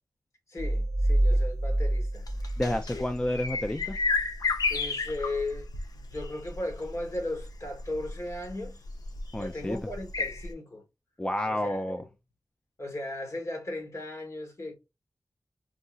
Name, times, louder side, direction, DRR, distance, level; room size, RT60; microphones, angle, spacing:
voice 1, 0.5-2.2 2.9-3.0 4.7-5.7 5.9-8.8 9.4-10.8 11.5-12.1 12.8-14.7, left 2 dB, 50° left, 1.5 m, -36 dB
sound 1, 0.6-3.3, right 1 dB, 45° right, 0.6 m, -27 dB
sound 2, 2.2-10.5, left 4 dB, 70° left, 0.8 m, -33 dB
voice 2, 2.6-4.0 9.3-9.8 11.2-12.0, left 1 dB, 15° left, 0.4 m, -30 dB
4.7 x 2.7 x 2.4 m
wide cardioid pair, 85°, 7 cm